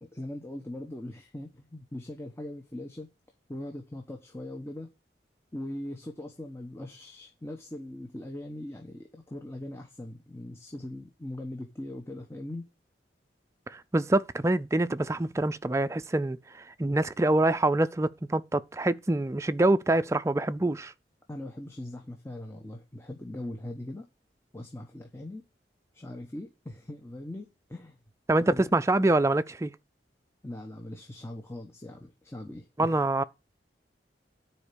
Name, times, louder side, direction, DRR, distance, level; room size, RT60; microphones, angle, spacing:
voice 1, 0.0-3.1 3.5-4.9 5.5-12.7 21.3-24.1 24.5-25.4 25.9-28.0 28.5-28.7 30.4-33.0, left 1 dB, 15° left, 1.0 m, -40 dB
voice 2, 13.7-20.9 28.3-29.7 32.8-33.2, right 2 dB, 15° right, 0.4 m, -25 dB
10.0 x 4.4 x 6.7 m
head